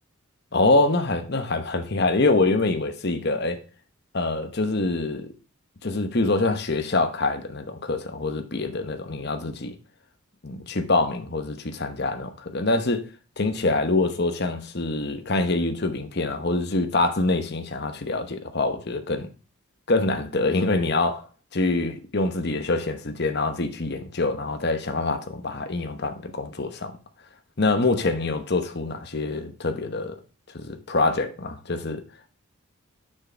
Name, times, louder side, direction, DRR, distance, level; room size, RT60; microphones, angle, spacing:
voice 1, 0.5-3.6 4.1-5.3 5.8-9.8 10.4-13.1 13.4-19.3 19.9-21.3 21.5-26.9 27.6-30.2 30.5-32.0, left 2 dB, 50° left, 1.0 m, -25 dB
6.4 x 6.3 x 4.5 m
head